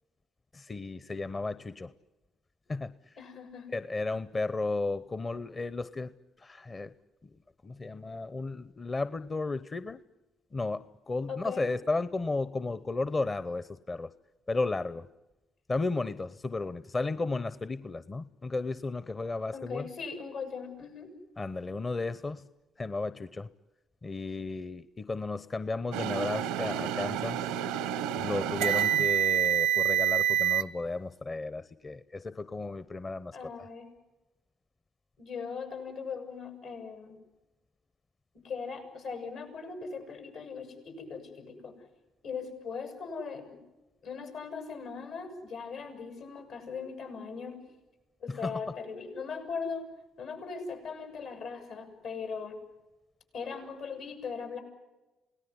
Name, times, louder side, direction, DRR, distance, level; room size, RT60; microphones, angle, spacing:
voice 1, 0.5-1.9 2.7-2.9 3.7-6.9 7.2-7.3 7.6-10.0 10.5-14.1 14.5-15.1 15.7-19.9 21.4-22.5 22.8-23.5 24.0-27.4 28.2-33.5 48.3-48.5, left 3 dB, 35° left, 15 dB, 0.9 m, -34 dB
voice 2, 3.2-3.7 11.3-11.7 19.5-21.1 33.3-33.9 35.2-37.2 38.3-41.9 42.2-43.6 44.0-47.6 48.2-49.9 50.2-52.6 53.3-54.6, left 5 dB, 75° left, 5 dB, 7.8 m, -39 dB
sound 1, 25.9-30.6, right 10 dB, 85° right, 0.8 m, -28 dB
28.5 x 18.5 x 9.8 m, 1.1 s
hypercardioid pair, 55°, 0 cm